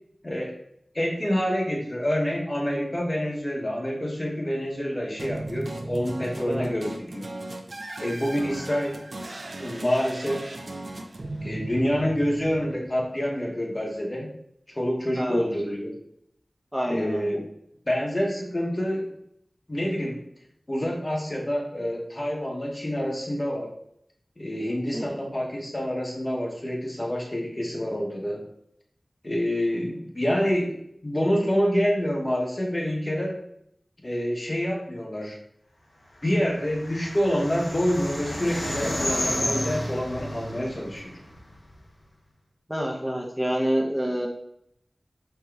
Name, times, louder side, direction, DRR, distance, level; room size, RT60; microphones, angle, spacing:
voice 1, 0.2-0.6 0.9-7.3 8.0-9.0 9.6-10.5 11.4-14.3 14.7-15.9 16.9-17.5 17.9-19.1 19.7-20.2 20.7-23.7 24.4-28.5 29.2-30.8 31.0-33.4 34.0-35.4 36.2-41.2, equal, 30° left, -1 dB, 0.8 m, -27 dB
sound 1, 5.2-13.4, right 1 dB, 65° right, 0.4 m, -37 dB
voice 2, 16.7-17.4 24.9-25.3 42.7-44.3, equal, 10° right, -1 dB, 0.5 m, -28 dB
sound 2, 36.4-41.8, left 1 dB, 70° left, 1.0 m, -31 dB
4.6 x 2.8 x 2.3 m, 0.72 s
wide cardioid pair, 60°, 0 cm